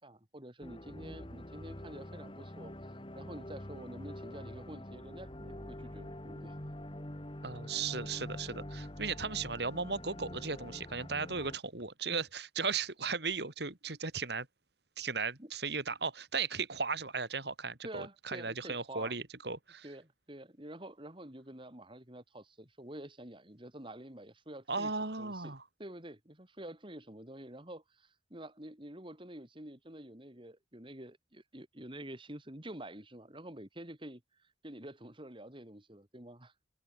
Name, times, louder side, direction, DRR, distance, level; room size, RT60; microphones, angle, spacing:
voice 1, 0.0-6.5 15.4-15.5 17.8-19.1 19.8-25.5 25.8-36.5, right 1 dB, 30° right, 3.1 m, -48 dB
sound 1, 0.6-11.6, left 1 dB, 30° left, 2.5 m, -45 dB
voice 2, 7.4-14.5 15.0-19.9 24.7-25.6, right 4 dB, 60° right, 2.9 m, -36 dB
open air
head